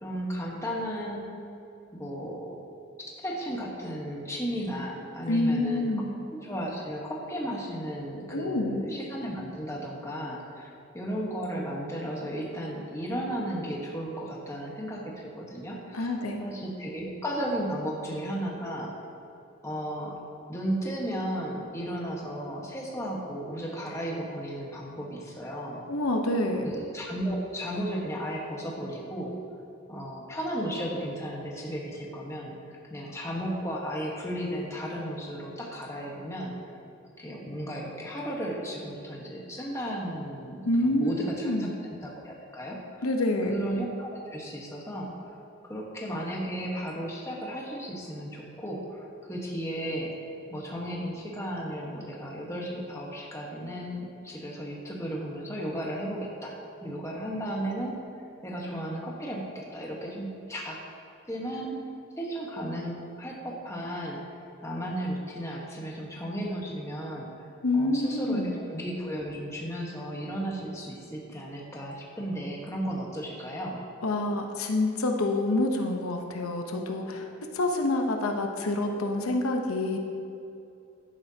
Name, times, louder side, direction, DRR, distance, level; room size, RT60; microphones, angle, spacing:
voice 1, 0.0-1.3 1.9-2.6 3.0-5.9 6.3-16.1 16.4-18.9 19.6-20.2 20.5-25.8 26.6-29.4 29.9-36.5 37.2-41.7 42.0-43.1 43.5-45.1 45.6-50.1 50.5-58.0 58.4-60.8 61.3-61.8 62.2-64.2 64.6-67.3 67.7-73.8, equal, 15° left, -3 dB, 1.3 m, -34 dB
voice 2, 5.3-6.1 8.3-8.9 15.9-16.5 25.9-26.7 40.6-41.7 43.0-43.5 67.6-68.6 74.0-77.3 77.5-80.0, left 2 dB, 85° left, 3 dB, 0.9 m, -27 dB
11.0 x 10.0 x 2.8 m, 2.7 s
head